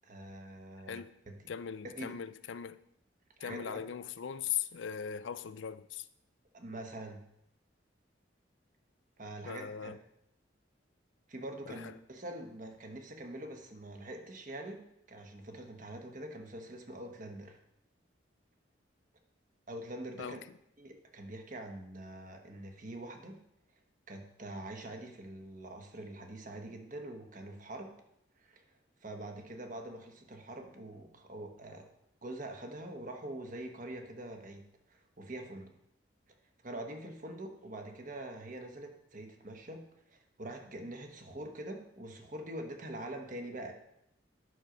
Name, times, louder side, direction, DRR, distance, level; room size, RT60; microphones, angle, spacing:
voice 1, 0.0-1.4 2.0-2.1 3.4-3.8 6.5-7.2 9.2-9.9 11.3-17.6 19.7-20.4 20.8-23.4 24.1-27.9 28.4-28.6 29.0-31.9 32.2-35.7 36.6-39.8 40.1-43.7, right 1 dB, 45° right, 1.2 m, -44 dB
voice 2, 1.5-2.8 3.4-6.1 9.4-10.0 11.7-11.9 20.2-20.4, left 8 dB, 80° left, 0.5 m, -39 dB
9.7 x 6.4 x 5.1 m
head